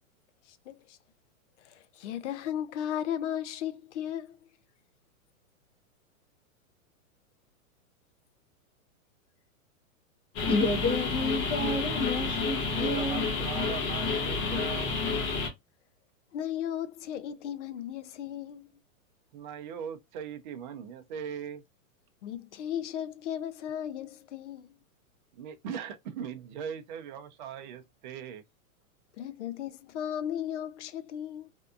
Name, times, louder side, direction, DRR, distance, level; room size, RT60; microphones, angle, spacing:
voice 1, 0.5-1.0 1.6-4.5 16.3-18.7 22.2-24.8 29.2-31.5, left 10 dB, 55° left, 0.6 m, -36 dB
sound 1, 10.4-15.5, left 4 dB, 30° left, 1.0 m, -30 dB
voice 2, 10.5-13.2, left 2 dB, 10° left, 0.6 m, -30 dB
voice 3, 12.7-15.0 19.3-21.6 25.3-28.4, right 7 dB, 35° right, 0.5 m, -40 dB
2.7 x 2.3 x 2.3 m
hypercardioid pair, 155°, 42 cm